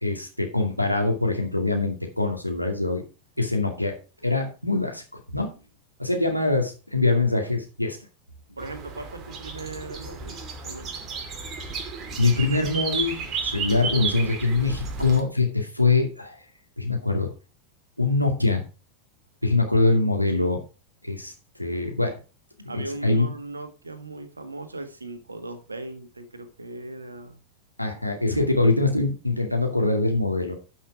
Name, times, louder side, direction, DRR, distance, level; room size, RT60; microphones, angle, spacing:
voice 1, 0.0-3.0 3.4-3.9 4.2-5.0 5.3-5.5 6.0-8.0 12.2-16.4 16.8-17.3 18.0-18.6 19.4-20.6 21.0-21.3 21.6-22.2 22.6-23.3 27.8-30.5, left 3 dB, 90° left, 2 dB, 2.3 m, -23 dB
sound 1, 8.6-15.2, right 5 dB, 30° right, 2.4 m, -33 dB
voice 2, 8.6-10.9 22.7-27.4 28.3-28.5, right 2 dB, 80° right, 9 dB, 1.7 m, -38 dB
11.5 x 5.7 x 4.8 m, 0.32 s
figure-of-eight pair, 90°, 0 cm